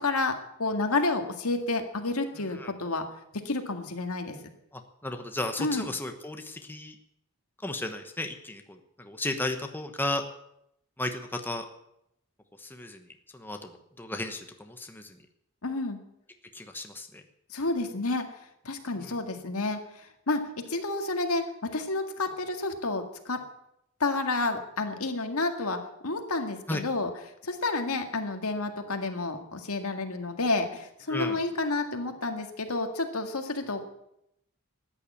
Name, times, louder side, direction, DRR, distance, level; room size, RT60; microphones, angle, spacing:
voice 1, 0.0-3.1 3.5-4.4 5.6-5.9 15.6-16.0 17.5-18.3 18.6-20.4 20.7-23.4 24.0-33.8, left 3 dB, 85° left, 5 dB, 2.0 m, -30 dB
voice 2, 5.0-6.9 7.6-8.6 9.0-10.2 11.0-11.6 12.7-13.0 13.4-13.6 14.0-14.4 14.8-15.0 16.5-17.1 26.7-26.8 31.1-31.4, left 2 dB, 10° left, 5 dB, 1.1 m, -33 dB
14.0 x 9.9 x 8.5 m, 0.78 s
head